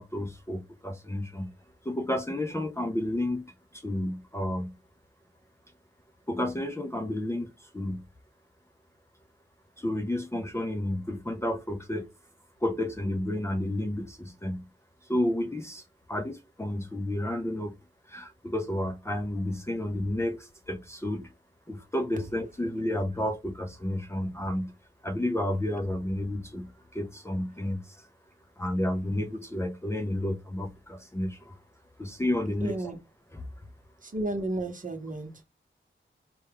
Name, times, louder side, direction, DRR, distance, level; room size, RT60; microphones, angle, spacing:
voice 1, 0.0-1.5 1.8-4.7 6.3-8.0 9.8-12.1 12.6-14.6 15.1-17.7 18.1-21.3 21.7-24.7 25.0-28.1 28.6-31.6 32.0-32.9 33.3-33.4, left 1 dB, 15° left, 0.5 m, -31 dB
voice 2, 32.6-33.0 34.1-35.4, right 1 dB, 40° right, 0.9 m, -32 dB
4.2 x 2.3 x 3.4 m
wide cardioid pair, 85°, 21 cm